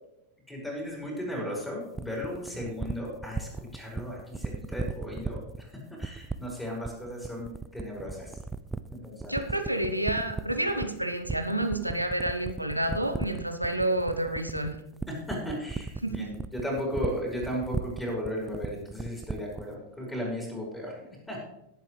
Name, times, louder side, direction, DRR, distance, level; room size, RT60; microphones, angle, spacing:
voice 1, 0.5-8.4 8.9-9.4 15.1-21.4, equal, 10° left, -3 dB, 4.6 m, -35 dB
sound 1, 1.9-19.7, right 3 dB, 10° right, 0.5 m, -35 dB
voice 2, 9.3-14.8 16.0-16.3, right 1 dB, 90° right, 7 dB, 1.0 m, -29 dB
19.0 x 7.6 x 3.3 m, 0.86 s
figure-of-eight pair, 90°, 0 cm